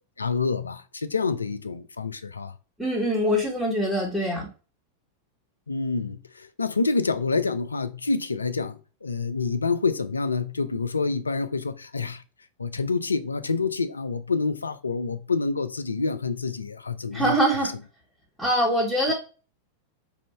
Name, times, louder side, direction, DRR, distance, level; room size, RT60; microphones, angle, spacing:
voice 1, 0.2-2.5 5.7-12.2 12.6-17.3, left 4 dB, 75° left, 0.4 m, -27 dB
voice 2, 2.8-4.5 17.1-17.7 18.4-19.1, equal, ahead, 1.5 m, -23 dB
3.5 x 2.6 x 4.3 m
figure-of-eight pair, 90°, 0 cm